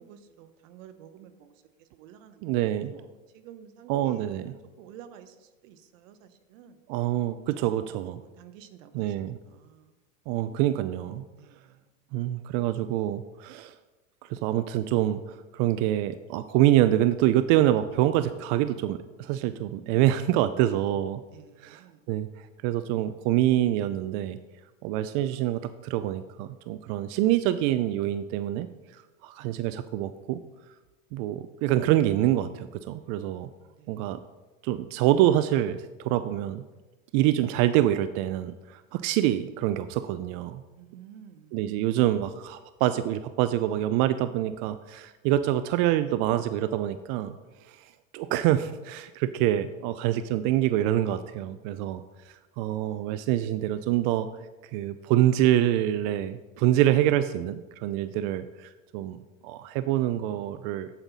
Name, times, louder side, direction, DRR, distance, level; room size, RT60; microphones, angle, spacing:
voice 1, 0.0-1.5 1.8-2.5 2.8-3.1 3.3-6.8 7.9-9.9 11.3-11.9 21.3-22.0 33.7-34.1 40.8-41.6, right 9 dB, 65° right, 11 dB, 1.0 m, -51 dB
voice 2, 2.4-2.9 3.9-4.5 6.9-8.2 8.9-9.4 10.3-11.2 12.1-13.7 14.3-21.2 21.6-24.4 24.8-30.4 31.1-33.5 33.9-34.2 34.6-36.6 37.1-40.6 41.5-47.4 47.6-54.3 54.7-59.2 59.4-60.9, right 13 dB, 45° right, 12 dB, 0.4 m, -26 dB
8.1 x 7.8 x 4.0 m, 1.1 s
hypercardioid pair, 115°, 41 cm